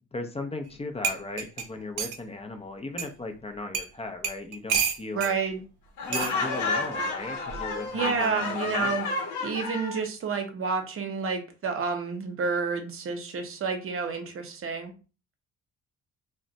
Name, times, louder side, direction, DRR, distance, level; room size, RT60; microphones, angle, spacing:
voice 1, 0.1-5.4 6.1-9.1, left 3 dB, 20° left, 5 dB, 0.5 m, -37 dB
sound 1, 0.7-0.8 1.0-2.2 3.0-3.1 3.7-3.9 4.2-5.3 6.1-6.3 7.5-7.7, right 6 dB, 80° right, 0.6 m, -29 dB
voice 2, 5.1-5.6 7.9-9.1 9.4-14.9, right 5 dB, 45° right, 5 dB, 0.8 m, -30 dB
Laughter, 6.0-10.0, left 3 dB, 75° left, 0.8 m, -30 dB
2.4 x 2.2 x 3.9 m, 0.34 s
cardioid pair, 90°, 30 cm